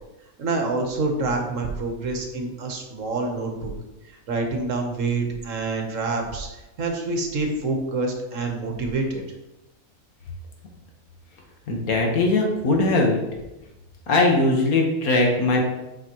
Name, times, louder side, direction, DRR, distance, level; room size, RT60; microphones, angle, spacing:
voice 1, 0.4-3.7 4.0-9.2, right 3 dB, 65° right, 3 dB, 1.4 m, -27 dB
voice 2, 11.7-13.2 14.1-15.6, left 2 dB, 90° left, 1 dB, 1.7 m, -20 dB
7.9 x 5.1 x 3.0 m, 0.99 s
omnidirectional pair, 1.5 m